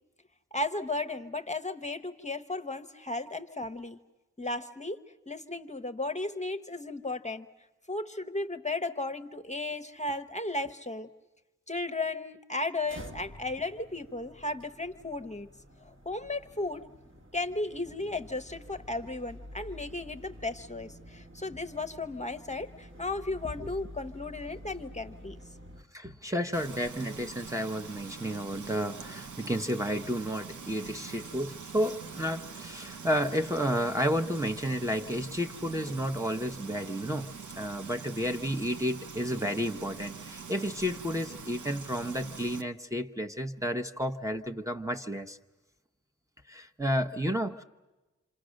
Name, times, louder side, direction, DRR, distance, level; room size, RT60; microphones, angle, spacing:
voice 1, 0.5-4.0 4.4-5.0 5.3-7.5 7.9-11.1 11.7-15.5 15.8-16.8 17.3-25.4, left 2 dB, 25° left, 8 dB, 0.9 m, -35 dB
sound 1, 12.8-25.8, equal, 45° right, 1.7 m, -49 dB
voice 2, 25.9-37.3 37.6-45.4 46.5-47.6, equal, 10° right, 6 dB, 0.9 m, -31 dB
Frying (food), 26.5-42.6, right 5 dB, 85° right, 1.0 m, -44 dB
28.0 x 26.0 x 6.5 m, 1.1 s
wide cardioid pair, 60°, 29 cm